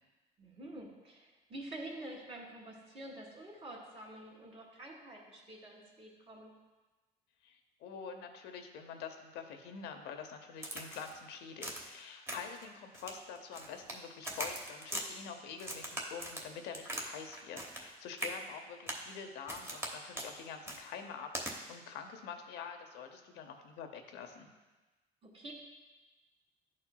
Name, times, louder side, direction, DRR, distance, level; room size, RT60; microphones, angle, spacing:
voice 1, 0.4-6.5 25.2-25.5, right 1 dB, 35° right, -2 dB, 1.9 m, -48 dB
voice 2, 7.4-24.5, left 6 dB, 85° left, 6 dB, 0.7 m, -46 dB
Crack, 10.6-11.2 11.6-11.9 12.3-12.6 12.9-14.0 14.2-15.1 15.6-17.1 17.3-17.9 18.2-18.4 18.9-19.1 19.5-19.9 20.2-20.3 20.7-20.8 21.3-21.5, right 1 dB, 15° right, 1.0 m, -41 dB
11.5 x 4.3 x 2.2 m, 1.2 s
cardioid pair, 110°, 17 cm